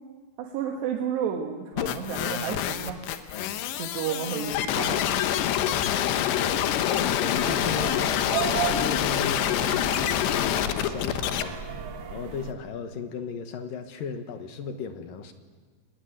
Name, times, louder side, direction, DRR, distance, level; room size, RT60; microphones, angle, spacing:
voice 1, 0.4-3.0 3.8-5.3, right 8 dB, 85° right, 2 dB, 3.7 m, -31 dB
sound 1, 1.8-11.4, left 10 dB, 90° left, 3.3 m, -26 dB
voice 2, 5.6-11.6 11.9-15.3, left 6 dB, 65° left, 8 dB, 2.7 m, -36 dB
sound 2, 7.3-12.5, right 8 dB, 70° right, 1.5 m, -34 dB
23.0 x 19.5 x 9.4 m, 1.6 s
omnidirectional pair, 4.8 m